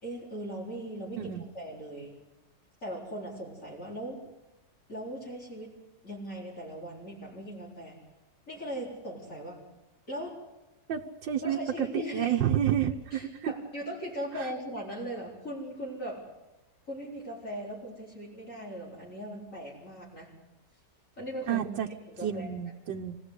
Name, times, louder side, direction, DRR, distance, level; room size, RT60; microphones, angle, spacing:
voice 1, 0.0-2.1 2.8-4.2 4.9-5.7 6.0-8.0 8.5-9.6 10.1-10.4 11.4-12.4 13.1-16.2 16.9-20.3 21.2-21.7 22.1-22.5, equal, 45° left, -5 dB, 4.6 m, -39 dB
voice 2, 10.9-13.5 14.4-14.5 21.5-21.9 22.2-23.2, right 10 dB, 80° right, 1 dB, 1.6 m, -30 dB
25.5 x 17.0 x 8.2 m, 1.0 s
omnidirectional pair, 2.0 m